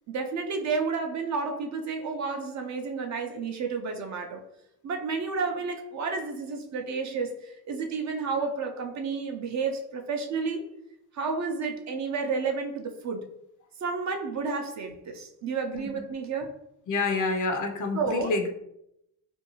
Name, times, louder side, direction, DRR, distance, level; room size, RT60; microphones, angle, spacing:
voice 1, 0.1-4.4 4.8-10.7 11.1-13.3 13.8-16.6 17.9-18.3, right 4 dB, 45° right, 4 dB, 0.4 m, -31 dB
voice 2, 16.9-18.5, left 3 dB, 45° left, 5 dB, 0.5 m, -28 dB
2.5 x 2.2 x 2.9 m, 0.80 s
cardioid pair, 85°, 43 cm